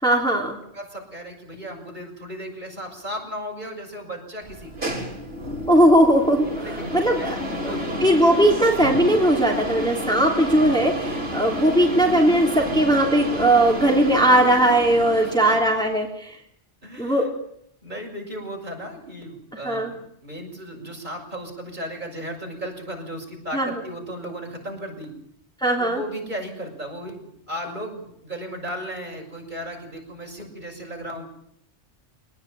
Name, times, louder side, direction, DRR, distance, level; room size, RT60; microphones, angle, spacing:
voice 1, 0.0-0.6 5.7-6.4 6.9-7.4 8.0-16.4 17.0-17.3 19.6-19.9 23.5-23.7 25.6-26.0, right 1 dB, 5° left, 0 dB, 3.1 m, -19 dB
voice 2, 0.7-4.9 6.3-8.2 15.1-15.6 16.8-17.3 17.8-25.2 25.8-31.3, equal, 40° right, 1 dB, 6.5 m, -35 dB
sound 1, 4.4-16.0, equal, 60° right, 4.7 m, -30 dB
24.0 x 19.5 x 9.0 m, 0.73 s
omnidirectional pair, 1.2 m